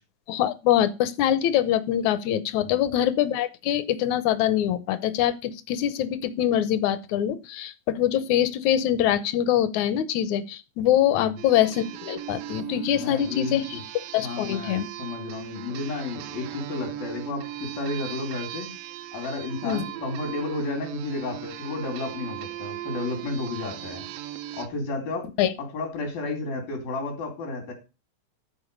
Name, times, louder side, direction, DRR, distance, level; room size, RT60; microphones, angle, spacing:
voice 1, 0.3-13.8 14.1-14.9 19.6-19.8 25.4-25.5, left 11 dB, 75° left, 14 dB, 1.8 m, -24 dB
sound 1, 11.4-24.7, right 12 dB, 80° right, 2.3 m, -38 dB
voice 2, 12.9-13.8 14.2-18.7 19.1-24.0 24.5-25.3 25.6-27.7, left 3 dB, 90° left, 3 dB, 4.5 m, -32 dB
12.0 x 4.5 x 6.5 m, 0.29 s
omnidirectional pair, 4.0 m